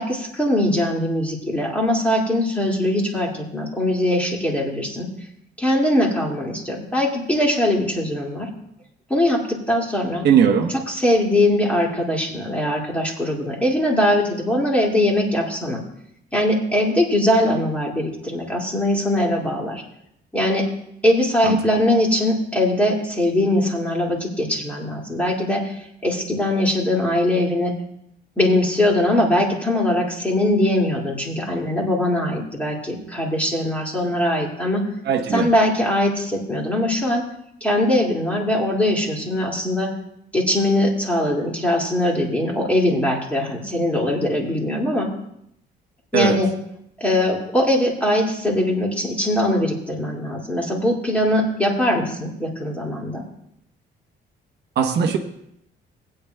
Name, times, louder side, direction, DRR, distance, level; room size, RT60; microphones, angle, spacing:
voice 1, 0.0-5.1 5.6-8.5 9.1-10.3 10.9-15.8 16.3-19.8 20.3-20.6 21.0-27.7 28.4-34.9 35.3-37.2 37.6-39.9 40.3-45.1 46.1-46.5 47.0-53.2, left 1 dB, 5° left, -2 dB, 2.2 m, -21 dB
voice 2, 10.2-10.7 21.4-21.6 35.0-35.5 46.1-46.4 54.8-55.2, right 7 dB, 70° right, 3 dB, 1.0 m, -18 dB
19.5 x 9.0 x 2.2 m, 0.76 s
cardioid pair, 145°, 18 cm